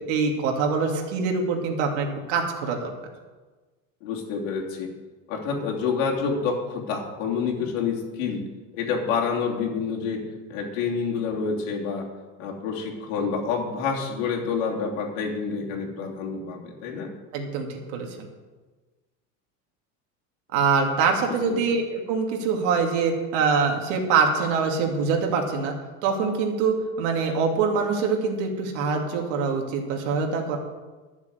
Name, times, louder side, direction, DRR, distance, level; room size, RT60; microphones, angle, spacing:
voice 1, 0.1-2.9 17.3-18.2 20.5-25.7 26.0-30.6, right 5 dB, 65° right, 2 dB, 2.3 m, -24 dB
voice 2, 4.0-4.9 5.3-8.4 8.7-10.2 10.5-12.1 12.4-17.1, left 5 dB, 80° left, -1 dB, 3.1 m, -28 dB
12.0 x 7.4 x 7.9 m, 1.3 s
cardioid pair, 160°, 39 cm